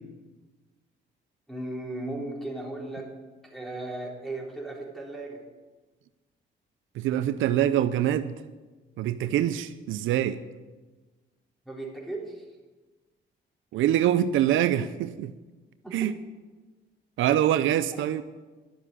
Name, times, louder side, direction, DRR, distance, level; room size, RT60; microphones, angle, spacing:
voice 1, 1.5-3.1 3.4-5.4 11.7-12.4 15.8-16.1, right 2 dB, ahead, 3.9 m, -36 dB
voice 2, 7.0-8.3 9.0-10.4 13.7-15.3 15.9-16.1 17.2-18.2, right 11 dB, 80° right, 0.6 m, -24 dB
12.0 x 7.4 x 8.1 m
cardioid pair, 90°, 20 cm